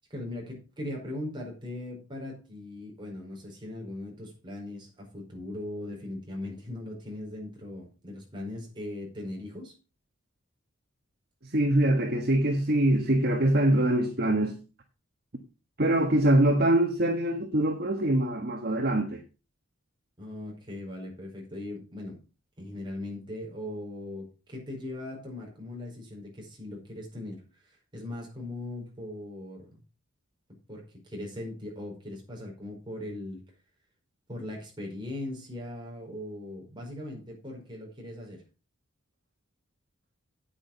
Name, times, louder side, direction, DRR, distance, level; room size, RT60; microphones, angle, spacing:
voice 1, 0.1-9.7 20.2-22.2 22.6-29.8 30.7-33.4 34.3-38.4, left 1 dB, 20° right, 4.9 m, -39 dB
voice 2, 11.4-14.6 15.8-19.2, right 1 dB, 50° right, 1.4 m, -24 dB
9.2 x 8.8 x 5.4 m
head